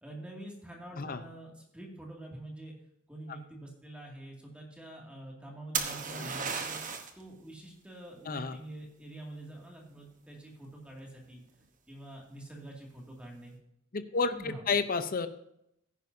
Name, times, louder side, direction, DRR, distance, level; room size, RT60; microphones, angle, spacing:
voice 1, 0.0-2.7 3.1-11.4 11.9-13.6 14.3-14.7, right 1 dB, 5° right, -2 dB, 2.3 m, -46 dB
sound 1, 5.7-7.2 10.9-11.3, right 6 dB, 40° right, 1.1 m, -34 dB
voice 2, 8.2-8.6 13.9-15.3, left 4 dB, 45° left, 10 dB, 0.7 m, -31 dB
15.0 x 9.9 x 2.7 m, 0.77 s
head